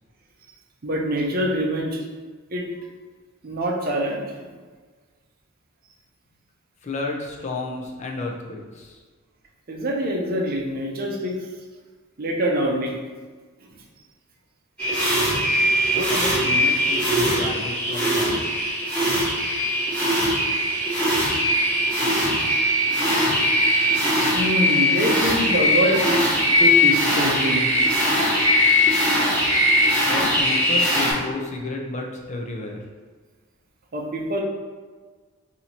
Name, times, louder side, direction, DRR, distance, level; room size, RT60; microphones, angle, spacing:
voice 1, 0.8-2.0 2.5-2.7 3.4-4.5 9.7-11.4 12.2-13.0 24.3-27.7 33.9-34.4, right 1 dB, 40° right, 0 dB, 0.5 m, -25 dB
voice 2, 6.8-9.0 15.9-18.7 30.1-32.8, left 3 dB, 30° left, 0 dB, 0.4 m, -32 dB
sound 1, 14.8-31.1, left 1 dB, 5° left, 1.0 m, -20 dB
2.8 x 2.7 x 4.3 m, 1.4 s
head